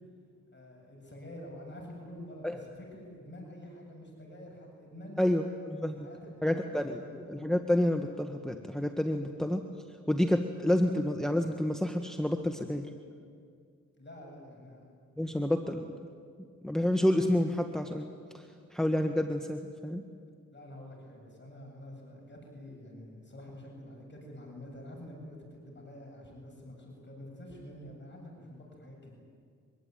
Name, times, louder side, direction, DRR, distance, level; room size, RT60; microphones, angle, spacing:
voice 1, 0.5-5.4 5.9-7.2 9.1-9.4 14.0-14.8 20.5-29.1, left 1 dB, 35° left, 0 dB, 8.0 m, -48 dB
voice 2, 5.2-6.1 6.4-7.0 7.3-9.6 10.1-12.9 15.2-15.8 16.6-18.1 18.3-18.4 18.7-20.0, left 1 dB, ahead, 4 dB, 1.7 m, -29 dB
24.5 x 24.0 x 9.4 m, 2.1 s
cardioid pair, 70°, 31 cm